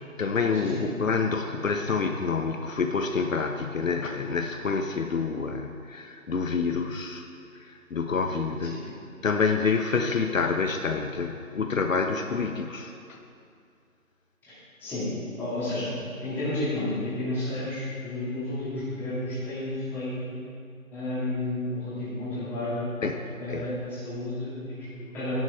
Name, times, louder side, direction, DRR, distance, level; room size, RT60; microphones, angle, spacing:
voice 1, 0.2-7.3 7.7-8.8 9.2-13.2 23.0-23.1 23.5-23.8, left 5 dB, 65° left, 5 dB, 1.0 m, -27 dB
voice 2, 14.4-15.9 16.2-20.3 20.9-22.9 23.4-25.4, left 1 dB, 5° left, -11 dB, 2.3 m, -31 dB
13.0 x 11.0 x 4.5 m, 2.4 s
figure-of-eight pair, 160°, 43 cm